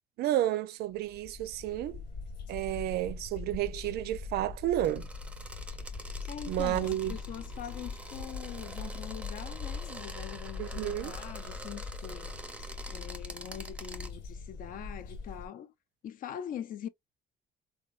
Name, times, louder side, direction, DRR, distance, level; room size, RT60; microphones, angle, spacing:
voice 1, 0.2-2.0 2.5-5.1 6.5-7.2 10.6-11.1, right 13 dB, 70° right, 0.4 m, -31 dB
sound 1, 0.9-15.5, left 4 dB, 75° left, 1.4 m, -42 dB
sound 2, 4.8-14.1, right 1 dB, 5° right, 0.6 m, -46 dB
voice 2, 6.3-12.3 12.9-15.7 16.0-16.9, left 10 dB, 55° left, 0.5 m, -43 dB
3.6 x 2.3 x 2.3 m
cardioid pair, 110°, 17 cm